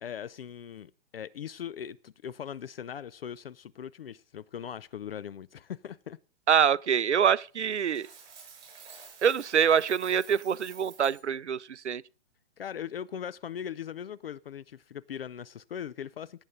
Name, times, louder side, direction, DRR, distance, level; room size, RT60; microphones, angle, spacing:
voice 1, 0.0-6.2 12.6-16.4, left 9 dB, 60° left, 0.5 m, -40 dB
voice 2, 6.5-8.1 9.2-12.0, right 7 dB, 80° right, 0.5 m, -25 dB
Coin (dropping), 7.7-11.2, right 6 dB, 10° right, 7.4 m, -50 dB
17.0 x 8.1 x 3.9 m
figure-of-eight pair, 120°, 34 cm